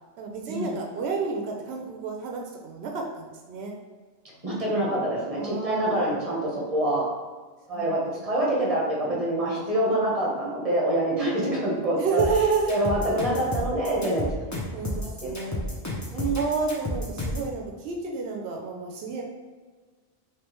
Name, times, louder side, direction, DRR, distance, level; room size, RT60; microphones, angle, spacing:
voice 1, 0.2-3.7 5.4-6.2 7.7-8.3 9.5-9.8 11.2-12.7 14.7-15.6 16.3-19.2, right 4 dB, 90° right, 1 dB, 0.8 m, -30 dB
voice 2, 4.4-7.0 7.7-11.3 11.6-12.2 12.7-14.6 15.2-15.3 16.1-16.4, right 1 dB, 35° right, -5 dB, 1.0 m, -26 dB
sound 1, 12.2-17.5, left 1 dB, 20° left, 0.7 m, -31 dB
3.3 x 3.1 x 3.0 m, 1.4 s
omnidirectional pair, 1.1 m